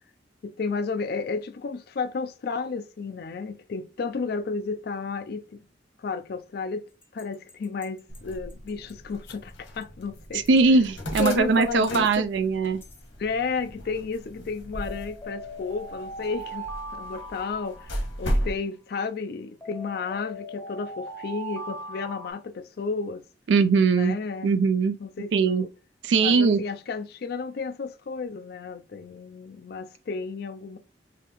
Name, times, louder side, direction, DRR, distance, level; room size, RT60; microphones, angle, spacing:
voice 1, 0.4-5.6 6.0-6.8 7.1-10.8 11.2-12.2 13.2-16.7 16.9-23.2 23.9-24.5 25.0-25.7 26.2-30.8, left 4 dB, 55° left, 0.3 m, -32 dB
sound 1, 7.0-8.9 9.3-9.4 9.8-9.9 10.6-11.0 11.6-12.2 12.6-13.0 14.7-18.5 19.6-22.3, right 1 dB, 10° left, 0.7 m, -40 dB
sound 2, 8.1-18.6, equal, 85° left, 1.5 m, -36 dB
voice 2, 10.3-12.8 23.5-24.2 24.4-25.0 25.3-25.7 26.0-26.6, right 4 dB, 70° right, 0.4 m, -21 dB
4.9 x 3.4 x 3.0 m
head